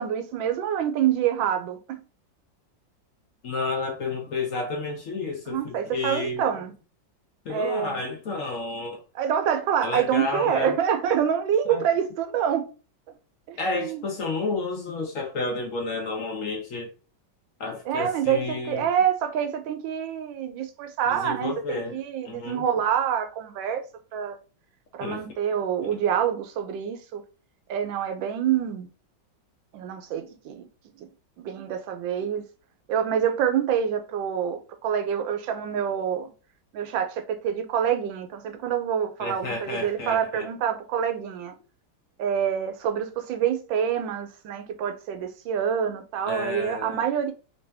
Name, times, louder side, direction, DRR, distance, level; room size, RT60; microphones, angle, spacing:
voice 1, 0.0-2.0 5.5-6.7 7.5-8.0 9.1-12.7 13.5-14.0 17.9-23.8 24.1-24.4 24.9-27.2 27.7-28.9 29.7-30.7 31.4-32.5 32.9-36.3 36.7-41.5 42.2-47.3, right 8 dB, 80° right, 1.4 m, -26 dB
voice 2, 3.4-6.6 7.4-9.0 9.8-10.8 11.7-11.8 13.6-16.9 17.6-18.9 21.1-22.0 22.2-22.6 25.0-25.2 39.2-40.5 46.3-47.0, left 3 dB, 55° left, 0.9 m, -31 dB
3.2 x 2.9 x 3.3 m
omnidirectional pair, 2.1 m